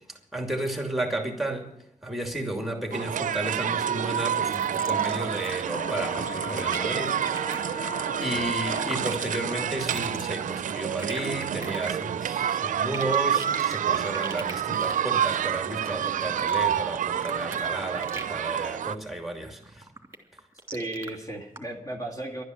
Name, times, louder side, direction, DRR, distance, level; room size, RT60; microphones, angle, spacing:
voice 1, 0.0-1.7 2.0-7.6 8.2-19.8, right 1 dB, ahead, 2.6 m, -33 dB
sound 1, 2.9-19.0, right 9 dB, 90° right, 0.5 m, -28 dB
sound 2, 4.5-5.6 5.8-18.4 18.7-19.0 19.4-21.1 21.5-21.6, right 2 dB, 20° right, 2.9 m, -41 dB
Wind instrument woodwind instrument, 5.7-9.9, equal, 70° left, 2.7 m, -37 dB
voice 2, 20.7-22.4, right 1 dB, 25° left, 2.2 m, -35 dB
12.5 x 9.7 x 9.2 m
cardioid pair, 80°, 13 cm